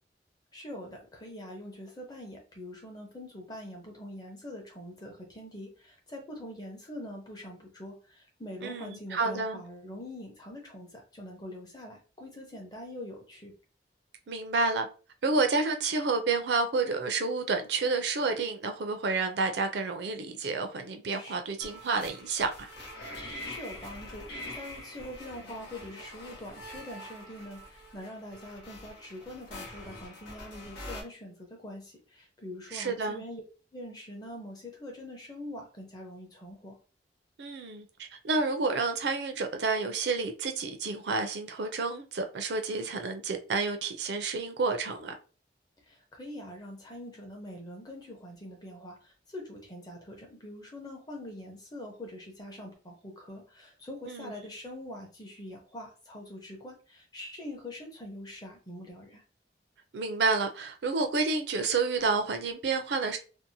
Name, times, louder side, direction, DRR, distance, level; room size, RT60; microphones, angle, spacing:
voice 1, 0.5-13.6 21.1-21.4 23.4-33.4 33.7-36.8 45.8-59.2, left 1 dB, 20° left, 0.7 m, -44 dB
voice 2, 8.6-9.6 14.3-14.9 15.2-22.7 32.7-33.2 37.4-37.9 38.2-45.2 54.1-54.3 59.9-63.2, right 4 dB, 70° right, 0.4 m, -29 dB
sound 1, 21.6-31.0, left 1 dB, 85° left, 0.9 m, -44 dB
2.7 x 2.1 x 2.6 m
head